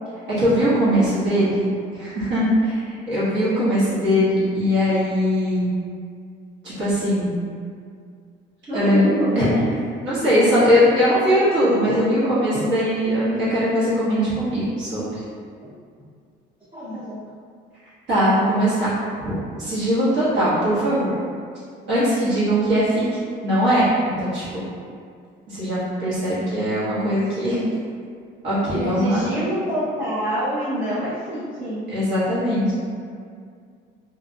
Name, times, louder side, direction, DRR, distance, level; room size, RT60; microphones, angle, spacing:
voice 1, 0.4-1.7 1.9-5.7 6.6-7.3 8.7-9.0 9.4-9.5 10.0-15.2 18.1-18.9 19.2-19.3 19.6-21.1 21.9-23.0 23.4-24.5 25.5-27.6 28.4-29.2 31.9-32.7, equal, 65° right, -12 dB, 1.1 m, -20 dB
voice 2, 8.7-9.7 11.9-12.0 16.0-16.1 16.7-17.2 28.7-31.9, equal, 25° right, -10 dB, 0.6 m, -26 dB
2.5 x 2.2 x 2.5 m, 2.2 s
cardioid pair, 100°, 20 cm